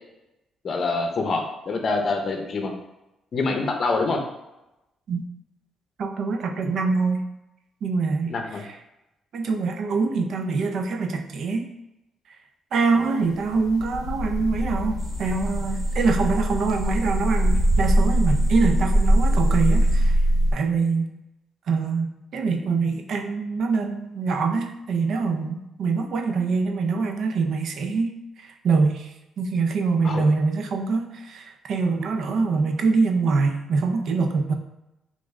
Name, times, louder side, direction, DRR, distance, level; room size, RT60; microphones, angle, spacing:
voice 1, 0.6-2.7 3.3-4.2 8.3-8.6 19.3-19.5 30.0-30.2, left 3 dB, 50° left, 3 dB, 0.6 m, -26 dB
voice 2, 6.0-7.2 7.8-8.3 8.6-8.8 9.3-11.7 12.7-20.2 20.5-21.1 21.7-34.5, right 4 dB, 65° right, 5 dB, 0.4 m, -24 dB
sound 1, 13.2-20.5, equal, 90° left, 0.6 m, -23 dB
sound 2, 15.0-20.0, equal, 10° right, 0.5 m, -26 dB
3.1 x 2.5 x 3.6 m, 0.93 s
cardioid pair, 90°, 0 cm